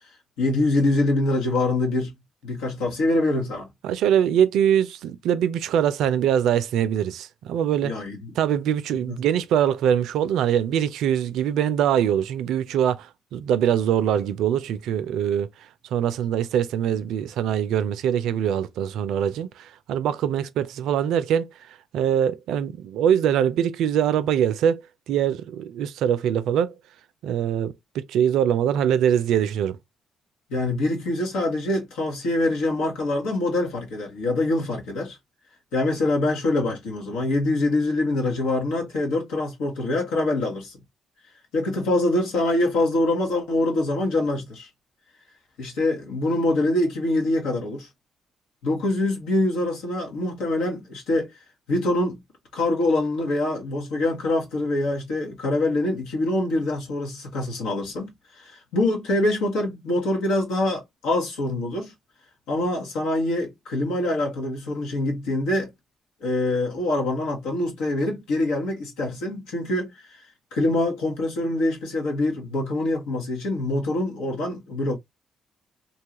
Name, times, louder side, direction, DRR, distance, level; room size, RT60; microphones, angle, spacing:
voice 1, 0.4-2.1 2.4-3.7 7.8-8.3 9.1-9.2 30.5-35.2 35.7-40.8 41.5-44.7 45.6-47.9 48.6-51.3 51.7-52.2 52.5-58.1 58.4-61.9 62.5-65.7 66.2-69.9 70.5-75.0, left 2 dB, 85° left, 1.1 m, -24 dB
voice 2, 3.8-8.0 8.4-15.5 15.9-21.5 21.9-24.8 25.1-26.8 27.2-29.8, right 9 dB, 80° right, 0.4 m, -23 dB
2.8 x 2.3 x 2.9 m
supercardioid pair, 55°, 0 cm